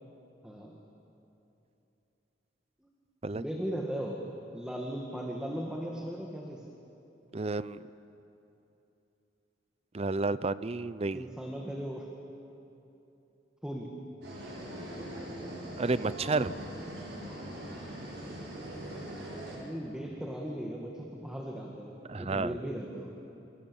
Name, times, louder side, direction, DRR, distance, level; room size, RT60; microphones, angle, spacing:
voice 1, 0.4-0.8 2.8-2.9 3.3-4.3 4.5-6.6 11.1-12.1 13.6-14.0 19.4-21.9 22.2-23.1, equal, 5° right, -1 dB, 2.0 m, -37 dB
voice 2, 7.3-7.8 9.9-11.3 15.5-16.5 22.1-22.6, right 3 dB, 35° right, 16 dB, 0.6 m, -31 dB
sound 1, 14.2-19.6, right 1 dB, 80° right, 7.9 m, -41 dB
28.5 x 26.0 x 7.2 m, 3.0 s
head